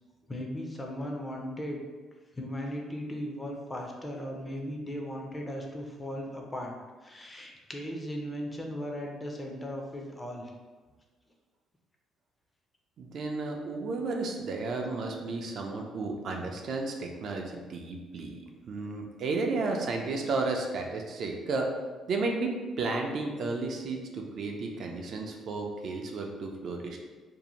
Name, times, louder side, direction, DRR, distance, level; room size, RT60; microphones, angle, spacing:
voice 1, 0.3-1.8 2.4-6.7 7.0-10.5, equal, 15° left, 0 dB, 0.4 m, -37 dB
voice 2, 13.0-18.4 18.7-21.7 22.1-22.5 22.8-27.0, right 3 dB, 55° right, 1 dB, 0.3 m, -33 dB
2.6 x 2.0 x 2.9 m, 1.3 s
cardioid pair, 120°, 0 cm